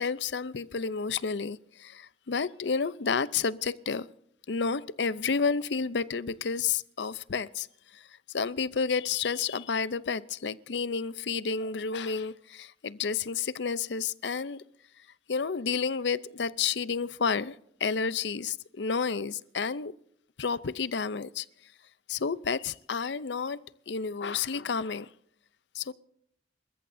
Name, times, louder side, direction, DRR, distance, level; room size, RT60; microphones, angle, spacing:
voice 1, 0.0-4.1 4.5-7.7 8.3-14.6 15.3-19.9 20.4-21.4 22.1-23.6 23.9-25.1 25.7-25.9, left 5 dB, 70° left, 0.6 m, -30 dB
27.5 x 14.0 x 2.7 m
head